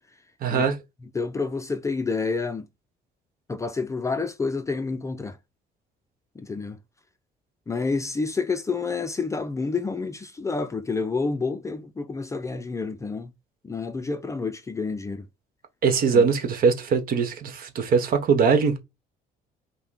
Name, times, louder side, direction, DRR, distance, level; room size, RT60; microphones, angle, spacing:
voice 1, 0.4-0.8 15.8-18.8, right 5 dB, 60° right, 1.2 m, -21 dB
voice 2, 1.1-2.7 3.5-5.4 6.4-6.8 7.7-13.3 13.6-15.3 16.1-16.2, left 4 dB, 20° left, 0.4 m, -29 dB
5.5 x 2.2 x 4.1 m
cardioid pair, 110°, 17 cm